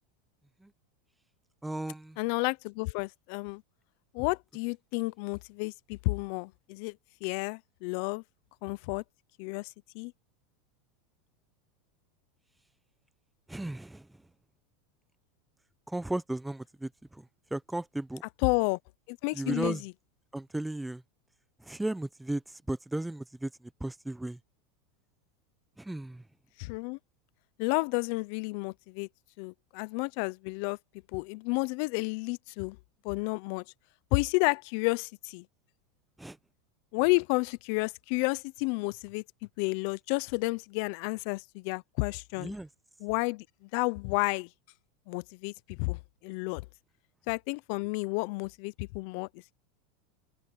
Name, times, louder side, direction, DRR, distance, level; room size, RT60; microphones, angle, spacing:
voice 1, 1.6-2.2 13.5-14.1 15.9-17.2 17.5-18.2 19.3-19.8 20.3-21.0 21.7-23.5 23.8-24.4 25.8-26.2 36.2-36.4 42.4-42.7, right 1 dB, 5° right, 1.0 m, -35 dB
voice 2, 2.2-3.6 4.1-7.0 7.2-8.2 8.6-9.0 9.4-10.1 18.4-18.8 19.1-19.9 26.6-27.0 27.6-29.1 29.4-30.8 31.1-32.8 33.0-33.6 34.1-35.4 36.9-39.2 39.6-42.5 43.0-44.5 45.1-46.6 47.3-49.3, left 27 dB, 60° left, 0.7 m, -31 dB
open air
hypercardioid pair, 110°, 0 cm